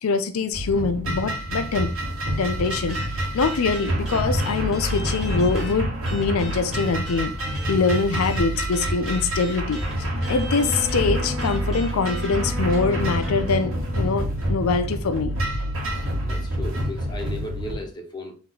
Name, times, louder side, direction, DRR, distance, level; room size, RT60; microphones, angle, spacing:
voice 1, 0.0-1.9 2.4-15.4, left 4 dB, 85° left, 0.4 m, -24 dB
sound 1, 0.5-17.7, equal, 80° right, 1.9 m, -27 dB
sound 2, 2.9-5.8 6.0-13.4, left 1 dB, ahead, 1.4 m, -40 dB
Wind instrument woodwind instrument, 10.2-14.3, left 2 dB, 65° right, 1.3 m, -37 dB
voice 2, 16.2-18.3, left 1 dB, 20° left, 1.0 m, -35 dB
3.8 x 3.1 x 4.5 m
head